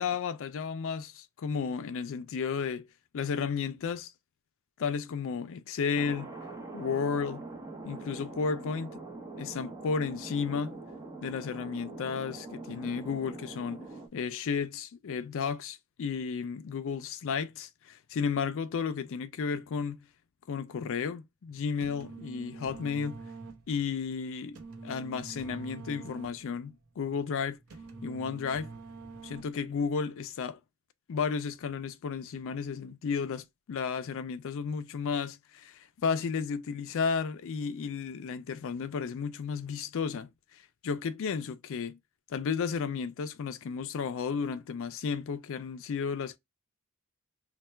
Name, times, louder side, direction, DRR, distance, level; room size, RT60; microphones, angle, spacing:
voice 1, 0.0-2.9 3.1-4.1 4.8-6.3 6.7-7.4 7.8-9.0 9.4-10.8 11.2-13.9 14.1-20.1 20.5-23.2 23.7-27.6 28.0-28.7 29.2-30.6 31.1-42.0 42.3-46.4, left 6 dB, 65° left, 0.4 m, -33 dB
Thunder, 5.9-14.1, right 3 dB, 15° right, 0.7 m, -43 dB
sound 1, 21.8-29.8, right 4 dB, 80° right, 0.8 m, -46 dB
3.2 x 2.2 x 4.2 m
head